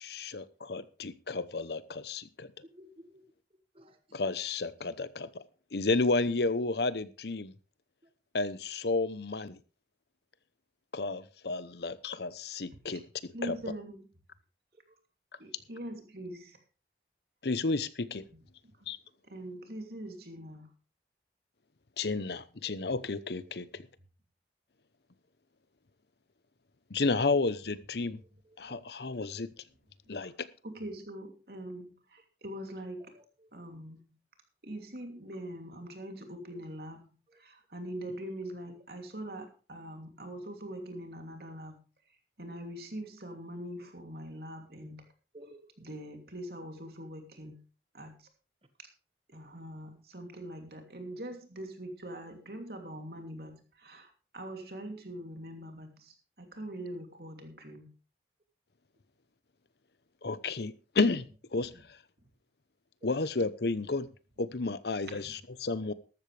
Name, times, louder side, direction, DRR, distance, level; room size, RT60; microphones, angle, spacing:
voice 1, 0.0-2.5 4.1-5.4 5.7-7.5 8.3-9.6 10.9-13.0 13.4-13.6 17.4-18.3 18.9-19.0 22.0-23.9 26.9-28.2 28.6-29.5 30.1-30.3 60.2-61.3 61.5-61.7 63.0-64.1 64.4-65.9, left 3 dB, 70° left, 15 dB, 0.8 m, -31 dB
voice 2, 2.6-3.2 3.7-4.2 14.9-15.0 28.4-28.8 33.0-33.5 36.5-36.7 37.3-37.4 45.3-45.9 52.3-52.4 63.0-63.1 65.1-65.3, equal, 30° right, 8 dB, 1.6 m, -56 dB
voice 3, 13.3-14.0 15.4-16.6 19.3-20.7 30.6-33.0 33.5-34.0 34.6-37.0 37.4-41.8 42.4-45.0 45.8-47.5 47.9-48.1 49.3-57.9 65.3-65.4, right 1 dB, 60° right, 4 dB, 2.9 m, -43 dB
14.0 x 12.5 x 3.3 m, 0.35 s
head